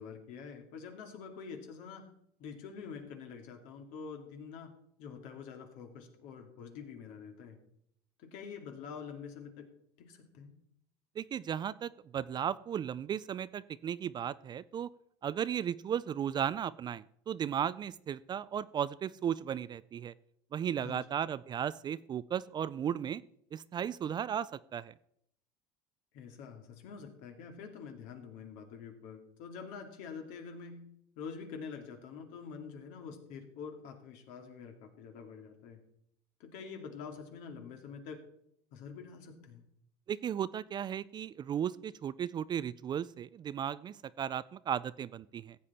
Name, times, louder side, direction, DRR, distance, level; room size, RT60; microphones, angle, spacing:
voice 1, 0.0-2.1 2.4-4.7 5.0-7.6 8.2-9.7 10.0-10.5 20.8-21.2 26.1-30.9 31.2-35.8 36.4-38.2 38.7-39.6, left 6 dB, 65° left, 5 dB, 2.4 m, -46 dB
voice 2, 11.2-14.9 15.2-20.1 20.5-23.2 23.5-24.9 40.1-45.6, right 9 dB, 30° right, 17 dB, 0.4 m, -35 dB
15.0 x 8.4 x 4.3 m, 0.71 s
supercardioid pair, 115°, 15 cm